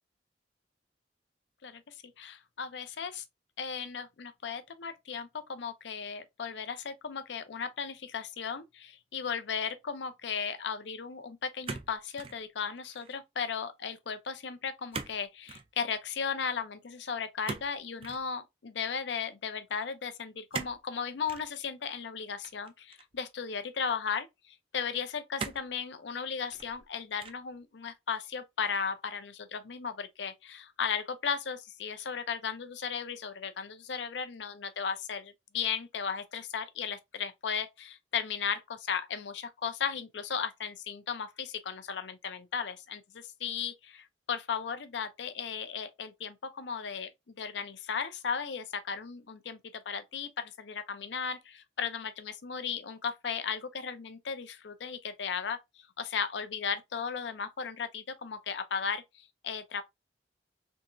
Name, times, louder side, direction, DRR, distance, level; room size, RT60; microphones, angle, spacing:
voice 1, 1.6-3.2 3.6-59.8, left 6 dB, 75° left, 0.5 m, -36 dB
sound 1, 11.6-12.4 12.8-13.2 14.9-15.2 15.5-15.7 17.4-18.2 20.5-20.8 21.3-21.5 22.4-23.2 23.9-24.0 25.4-25.8 26.4-26.8 27.2-27.5, right 4 dB, 30° right, 0.4 m, -40 dB
3.5 x 2.9 x 2.5 m
head